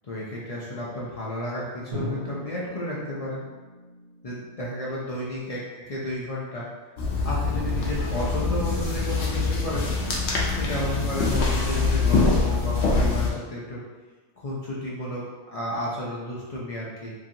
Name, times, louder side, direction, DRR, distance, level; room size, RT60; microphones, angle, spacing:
voice 1, 0.0-3.4 4.2-6.7 7.2-9.9 10.5-13.8 14.4-17.1, left 1 dB, 55° left, -6 dB, 0.4 m, -32 dB
Drum, 1.9-5.7, left 1 dB, 45° right, 0.9 m, -39 dB
sound 1, 7.0-13.3, left 3 dB, 70° left, 0.9 m, -24 dB
3.0 x 2.6 x 2.5 m, 1.3 s
omnidirectional pair, 1.2 m